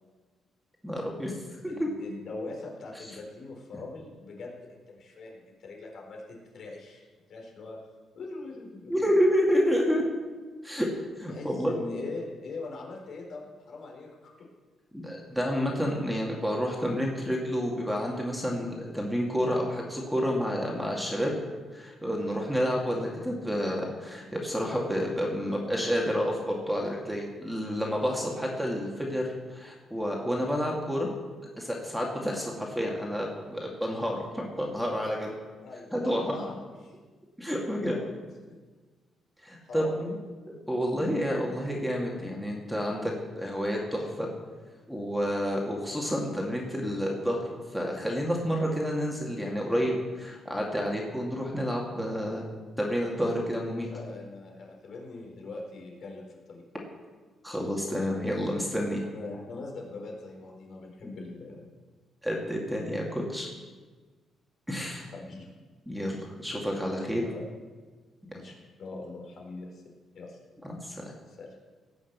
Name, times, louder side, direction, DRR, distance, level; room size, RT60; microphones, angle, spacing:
voice 1, 0.8-1.3 1.6-1.9 8.9-10.0 10.6-10.9 11.2-11.7 14.9-21.3 21.7-31.1 31.6-35.4 35.9-36.5 37.4-37.9 39.4-40.2 40.5-44.3 44.9-47.4 47.7-52.4 52.8-53.9 57.4-59.0 61.0-61.1 62.2-63.5 64.7-65.1 65.9-67.2 70.6-71.0, equal, ahead, -1 dB, 2.4 m, -29 dB
voice 2, 1.7-6.2 6.5-7.8 8.1-9.1 11.3-14.3 35.6-37.0 37.6-38.1 39.7-40.1 53.9-56.6 59.1-61.7 65.1-65.5 67.0-67.5 68.3-69.8 70.1-70.4 71.3-71.5, left 3 dB, 55° left, -1 dB, 4.2 m, -42 dB
18.0 x 6.5 x 8.2 m, 1.4 s
cardioid pair, 120°, 0 cm